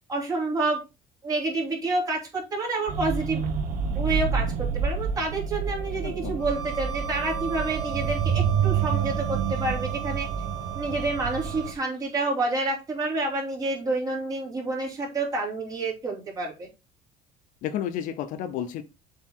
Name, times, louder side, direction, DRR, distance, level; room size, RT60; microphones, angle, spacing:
voice 1, 0.1-0.8 1.2-3.4 3.9-10.3 10.7-16.7, right 2 dB, 25° right, 3.0 m, -28 dB
sound 1, 2.9-11.7, right 7 dB, 60° right, 1.2 m, -28 dB
voice 2, 6.0-6.4 17.6-18.8, left 10 dB, 55° left, 0.7 m, -31 dB
Bowed string instrument, 6.4-11.8, right 11 dB, 25° left, 2.0 m, -38 dB
7.5 x 4.0 x 4.6 m
cardioid pair, 165°, 16 cm